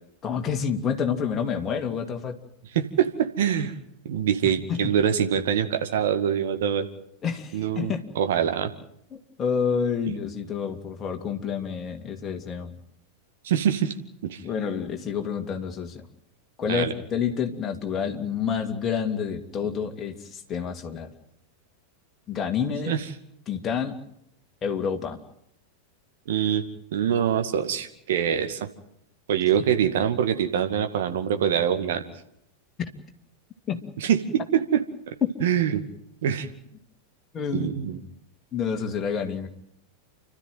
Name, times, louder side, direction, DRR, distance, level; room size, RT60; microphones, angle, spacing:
voice 1, 0.2-2.4 4.4-4.9 7.2-8.1 9.1-12.8 14.4-16.0 16.6-21.1 22.3-22.9 23.5-24.0 24.6-25.2 32.8-32.9 33.7-33.8 35.2-35.3 37.3-37.7 38.5-39.5, left 7 dB, 25° left, 4 dB, 2.8 m, -28 dB
voice 2, 2.7-3.7 4.0-6.9 7.5-8.7 13.4-13.9 14.2-14.4 16.7-16.9 22.9-23.0 26.3-26.6 26.9-28.7 29.3-32.0 34.0-34.8 35.4-35.8 36.2-36.5 37.5-38.0, right 9 dB, 55° right, 7 dB, 2.2 m, -24 dB
29.5 x 13.0 x 9.2 m, 0.75 s
figure-of-eight pair, 90°, 0 cm